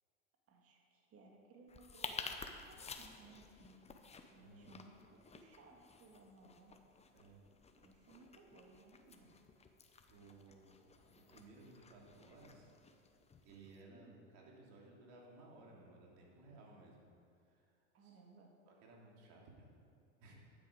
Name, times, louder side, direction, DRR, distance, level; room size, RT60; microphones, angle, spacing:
voice 1, 0.5-4.0 4.3-6.8 7.8-9.4 13.9-14.3 17.9-18.5, right 3 dB, 40° right, 1 dB, 2.1 m, -62 dB
sound 1, 1.7-13.8, left 4 dB, 15° left, 0.9 m, -53 dB
voice 2, 4.4-4.7 7.1-7.4 10.1-12.7 13.4-17.0 17.5-17.7 18.0-18.2 18.6-19.7 20.2-20.3, right 2 dB, 60° right, -2 dB, 3.1 m, -59 dB
11.5 x 9.1 x 5.1 m, 2.5 s
hypercardioid pair, 95°, 38 cm